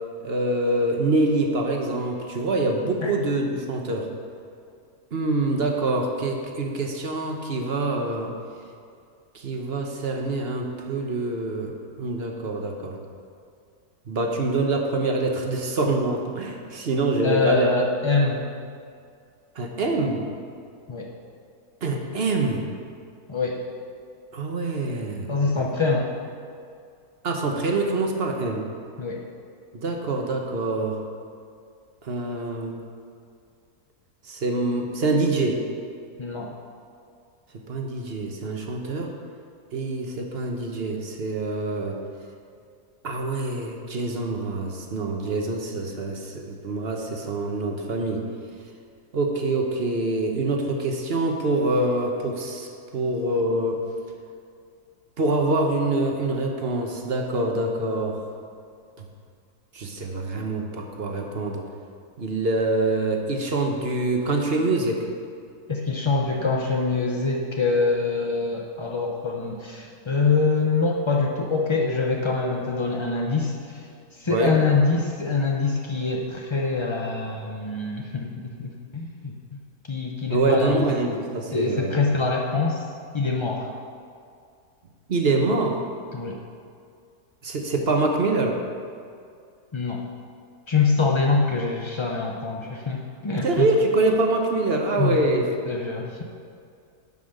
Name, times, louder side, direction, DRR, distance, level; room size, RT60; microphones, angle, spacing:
voice 1, 0.2-4.1 5.1-8.3 9.3-13.0 14.1-17.7 19.6-20.2 21.8-22.6 24.3-25.7 27.2-28.6 29.7-31.0 32.0-32.8 34.2-35.6 37.7-39.1 39.7-42.0 43.0-48.2 49.1-53.8 55.2-58.2 59.7-61.7 62.2-65.1 74.3-74.6 80.3-82.0 85.1-85.8 87.4-88.6 93.4-95.4, right 2 dB, 45° right, 2 dB, 1.1 m, -25 dB
voice 2, 17.2-18.5 20.9-21.1 23.3-23.6 25.3-26.1 29.0-29.2 36.2-36.5 65.7-73.8 74.1-79.6 79.9-80.8 81.5-82.9 83.1-83.7 86.1-86.4 89.7-90.0 90.7-93.7 95.0-95.3 95.7-96.2, left 4 dB, 50° left, 0 dB, 0.3 m, -24 dB
11.0 x 5.6 x 6.5 m, 2.3 s
omnidirectional pair, 1.6 m